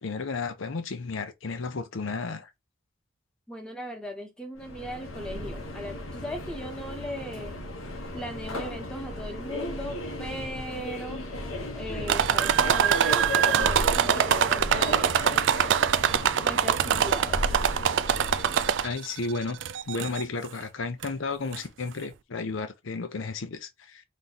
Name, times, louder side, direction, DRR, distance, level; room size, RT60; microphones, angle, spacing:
voice 1, 0.0-2.5 18.8-19.6 19.9-24.0, left 4 dB, 70° left, 0.6 m, -33 dB
voice 2, 3.5-7.5 8.1-11.2 11.7-15.2 16.4-17.5, equal, 5° left, 1.1 m, -38 dB
Subway metro underground, 4.6-18.9, left 1 dB, 85° left, 1.1 m, -35 dB
sound 1, 12.1-19.1 19.6-20.2 21.0-21.1 21.5-21.6, right 8 dB, 60° right, 0.4 m, -24 dB
4.1 x 3.1 x 3.9 m
head